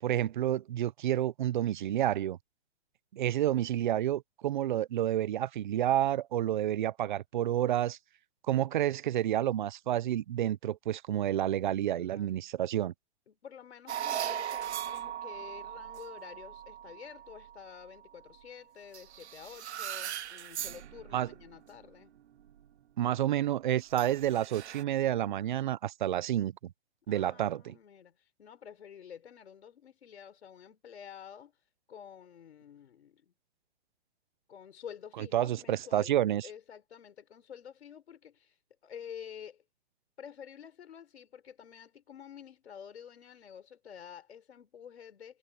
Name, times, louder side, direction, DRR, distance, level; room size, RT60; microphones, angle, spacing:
voice 1, 0.0-2.4 3.1-8.0 8.5-12.9 21.1-21.3 23.0-26.5 27.1-27.7 35.2-36.5, right 12 dB, 45° right, 0.7 m, -29 dB
voice 2, 11.9-12.5 13.3-22.1 27.1-31.5 31.9-33.3 34.5-36.1 36.4-39.6 40.2-45.4, left 8 dB, 75° left, 5.1 m, -49 dB
sound 1, 13.9-18.4 18.9-21.8 22.4-22.6 23.9-24.8, right 10 dB, 85° right, 0.8 m, -39 dB
hypercardioid pair, 165°, 33 cm